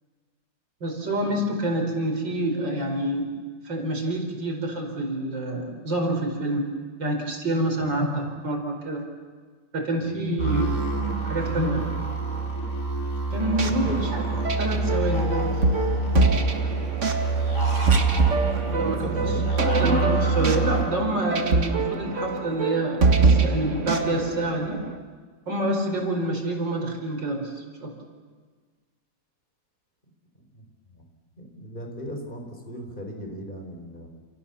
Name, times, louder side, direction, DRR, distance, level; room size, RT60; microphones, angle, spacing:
voice 1, 0.8-3.3 3.6-6.7 7.0-9.0 9.7-10.7 11.2-11.9 13.3-14.2 14.6-15.6 18.7-19.3 19.8-24.8 25.5-27.9, right 1 dB, 90° right, 3 dB, 5.4 m, -27 dB
voice 2, 10.0-10.3 11.7-11.8 13.6-14.1 14.5-14.6 18.5-19.5 30.5-30.7 30.9-31.0 31.4-34.1, equal, 25° left, 3 dB, 5.0 m, -37 dB
sound 1, 10.4-20.9, right 3 dB, 45° left, 5.8 m, -26 dB
sound 2, 13.4-25.0, right 3 dB, 45° right, 1.9 m, -25 dB
29.5 x 28.5 x 7.1 m, 1.5 s
omnidirectional pair, 1.9 m